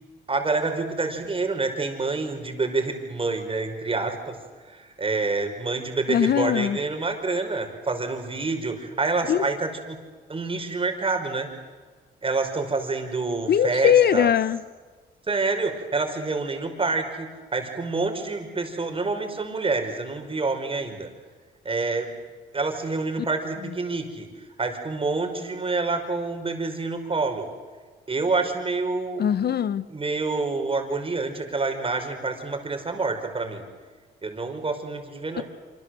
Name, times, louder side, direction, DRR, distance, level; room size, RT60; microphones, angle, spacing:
voice 1, 0.3-4.4 4.6-10.0 10.3-11.5 12.2-14.3 15.3-21.1 21.6-22.1 22.5-24.3 24.6-27.5 28.1-29.2 29.9-33.6 34.2-35.4, right 3 dB, 25° right, 5 dB, 5.4 m, -27 dB
voice 2, 6.1-6.8 9.3-9.4 13.5-14.6 29.2-29.8 35.4-35.5, left 9 dB, 55° left, 16 dB, 0.9 m, -20 dB
26.5 x 26.0 x 7.9 m, 1.4 s
cardioid pair, 90°, 20 cm